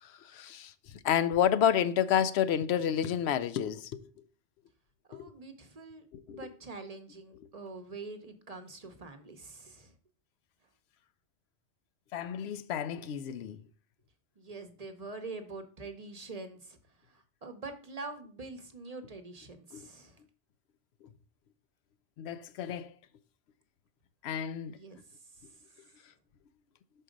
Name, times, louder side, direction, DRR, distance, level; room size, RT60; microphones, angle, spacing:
voice 1, 0.0-4.0 5.1-5.3 6.1-6.4 12.1-13.6 19.7-19.9 22.2-22.9 24.2-24.8, left 9 dB, 80° left, 0.8 m, -30 dB
voice 2, 5.1-9.9 14.4-16.8 17.1-20.2 24.7-25.0 25.3-25.6, right 3 dB, 40° right, 0.8 m, -45 dB
6.2 x 4.5 x 5.0 m
omnidirectional pair, 1.1 m